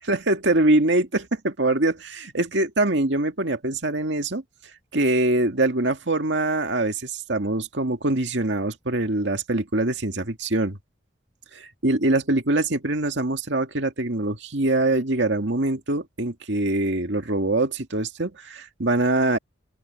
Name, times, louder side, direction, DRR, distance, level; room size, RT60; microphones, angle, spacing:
voice 1, 0.1-4.4 4.9-10.8 11.5-19.4, right 2 dB, 70° right, 2.0 m, -23 dB
open air
head